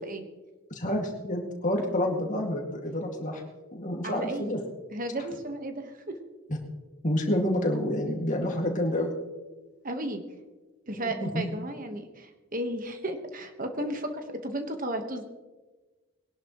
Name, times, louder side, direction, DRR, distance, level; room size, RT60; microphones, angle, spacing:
voice 1, 0.7-3.4 3.7-4.6 5.2-5.3 6.5-6.6 7.0-9.1 10.9-11.5, left 1 dB, 35° left, 1 dB, 2.2 m, -28 dB
voice 2, 4.0-4.5 4.9-5.9 9.8-10.2 10.9-15.2, right 1 dB, 40° right, 6 dB, 1.4 m, -34 dB
22.0 x 11.0 x 3.1 m, 1.2 s
head